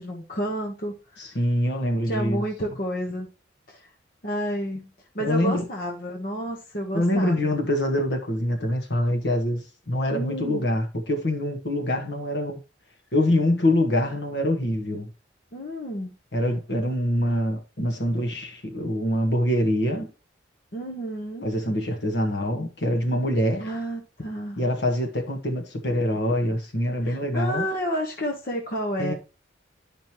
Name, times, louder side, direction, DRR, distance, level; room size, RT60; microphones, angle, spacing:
voice 1, 0.0-1.2 2.1-3.3 3.7-3.9 4.2-4.9 5.1-7.5 10.1-10.6 15.5-16.1 20.7-21.5 23.6-24.6 27.0-29.1, equal, 50° left, 1.2 m, -30 dB
voice 2, 1.2-2.4 5.2-5.6 6.9-12.6 13.1-15.1 16.3-20.1 21.4-23.7 24.6-27.7 29.0-29.1, left 1 dB, 65° left, 1.5 m, -25 dB
10.5 x 5.2 x 3.0 m
head